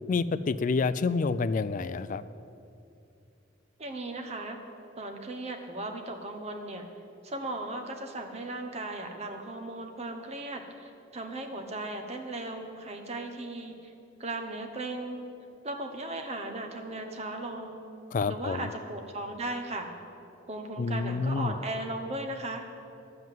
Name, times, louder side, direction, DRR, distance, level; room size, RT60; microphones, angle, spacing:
voice 1, 0.1-2.2 18.1-18.7 20.8-21.5, left 4 dB, 40° left, 14 dB, 0.3 m, -28 dB
voice 2, 3.8-4.6 5.0-6.9 7.2-13.9 14.2-15.2 15.6-17.8 18.3-19.9 20.5-22.6, right 2 dB, 30° right, 5 dB, 1.0 m, -37 dB
10.5 x 7.9 x 7.5 m, 2.7 s
head